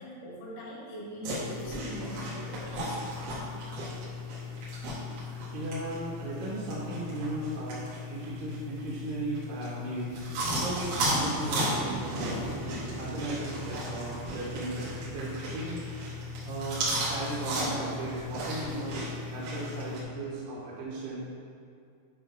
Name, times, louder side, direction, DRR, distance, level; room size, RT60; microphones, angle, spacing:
voice 1, 0.0-3.2, left 1 dB, 85° left, -6 dB, 4.0 m, -42 dB
eating chips, 1.2-20.0, equal, 90° right, 4.5 m, -35 dB
voice 2, 5.3-7.8 8.1-10.1 10.5-12.4 12.9-15.8 16.4-18.9 19.3-21.2, right 2 dB, 60° right, -8 dB, 2.7 m, -36 dB
sound 1, 10.1-20.2, right 1 dB, 70° left, 3.4 m, -44 dB
10.5 x 3.4 x 5.8 m, 2.4 s
omnidirectional pair, 5.4 m